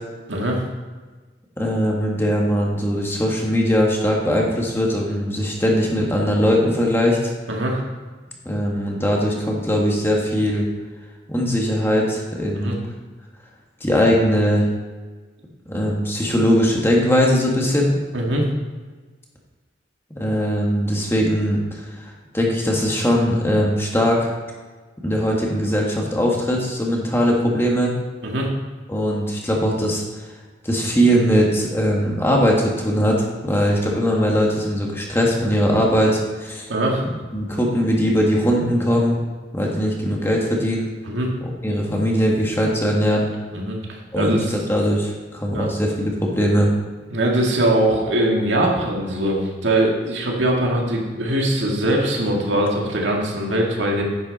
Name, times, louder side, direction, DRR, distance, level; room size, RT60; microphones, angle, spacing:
voice 1, 0.3-0.6 7.5-7.8 12.6-12.8 18.1-18.5 28.2-28.5 36.7-37.0 41.0-41.3 43.5-44.5 45.5-45.7 47.1-54.0, right 1 dB, 80° right, -1 dB, 2.1 m, -21 dB
voice 2, 1.6-7.3 8.4-10.7 11.3-12.7 13.8-14.7 15.7-18.0 20.1-22.0 22.3-24.3 25.0-28.0 28.9-30.0 30.6-36.7 37.3-39.2 39.5-40.9 41.4-43.3 44.1-46.7, equal, 15° left, -2 dB, 1.6 m, -20 dB
10.5 x 8.7 x 4.2 m, 1.3 s
head